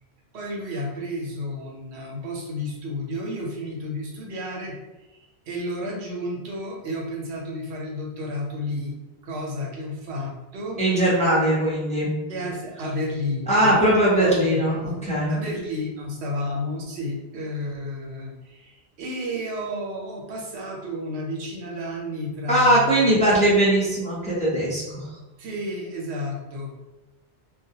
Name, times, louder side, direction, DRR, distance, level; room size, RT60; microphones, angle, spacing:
voice 1, 0.3-4.8 5.1-8.9 9.2-10.8 12.3-13.9 14.2-15.0 15.3-23.2 25.4-26.8, left 1 dB, 85° right, -1 dB, 0.9 m, -32 dB
voice 2, 10.8-12.1 13.5-15.4 22.5-25.2, right 1 dB, 10° left, -7 dB, 0.5 m, -20 dB
2.3 x 2.1 x 2.7 m, 1.0 s
omnidirectional pair, 1.1 m